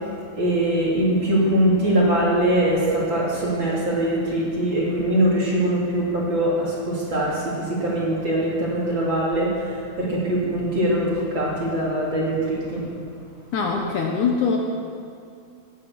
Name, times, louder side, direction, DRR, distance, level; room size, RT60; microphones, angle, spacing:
voice 1, 0.4-12.8, right 1 dB, 35° right, -5 dB, 3.1 m, -22 dB
voice 2, 13.5-14.6, left 5 dB, 65° left, 1 dB, 2.2 m, -22 dB
17.5 x 9.5 x 7.1 m, 2.4 s
omnidirectional pair, 4.2 m